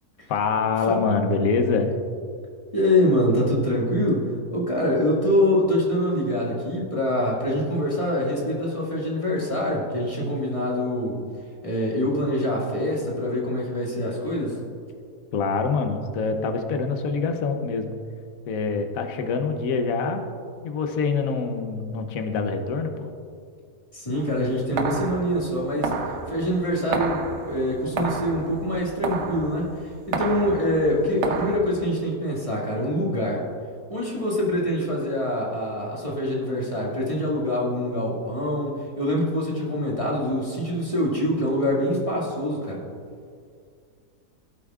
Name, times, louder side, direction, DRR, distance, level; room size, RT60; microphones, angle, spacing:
voice 1, 0.3-2.0 15.3-17.9 18.5-20.2 20.6-23.1, left 4 dB, 65° left, 6 dB, 1.2 m, -25 dB
voice 2, 2.7-11.2 11.6-14.6 23.9-25.9 26.3-33.5 33.9-42.8, left 1 dB, 20° left, -5 dB, 2.0 m, -25 dB
sound 1, 24.1-31.6, right 4 dB, 55° right, 1.0 m, -31 dB
17.5 x 8.3 x 2.4 m, 2.2 s
omnidirectional pair, 1.6 m